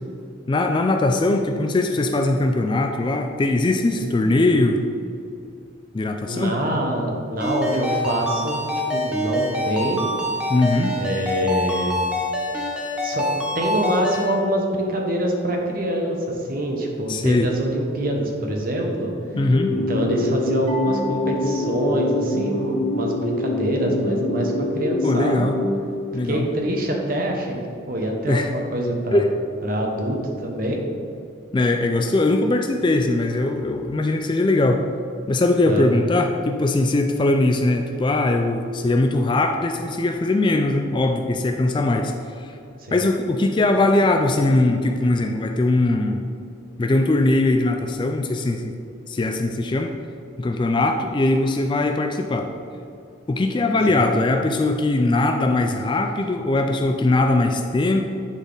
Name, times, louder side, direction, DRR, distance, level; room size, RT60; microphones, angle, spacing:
voice 1, 0.5-4.8 5.9-6.6 10.5-11.0 17.1-17.5 19.4-19.7 25.0-25.6 26.1-26.5 28.3-28.5 29.1-29.3 31.5-34.9 35.3-42.5 42.9-46.3 46.8-48.7 49.1-49.9 50.4-52.5 53.3-58.0, left 2 dB, 25° left, 4 dB, 0.3 m, -20 dB
voice 2, 6.2-8.6 8.9-10.0 11.0-12.0 13.0-13.3 13.5-19.1 19.7-25.5 26.2-27.6 27.9-29.3 29.6-30.8 35.7-36.0 42.8-43.0 53.9-54.0, right 1 dB, 45° right, 1 dB, 1.0 m, -25 dB
Ringtone, 7.4-14.3, left 1 dB, 5° right, 0.8 m, -25 dB
sound 1, 19.3-26.5, left 2 dB, 80° left, 0.7 m, -25 dB
sound 2, 20.7-22.8, left 4 dB, 90° right, 1.1 m, -35 dB
10.0 x 4.1 x 3.9 m, 2.5 s
head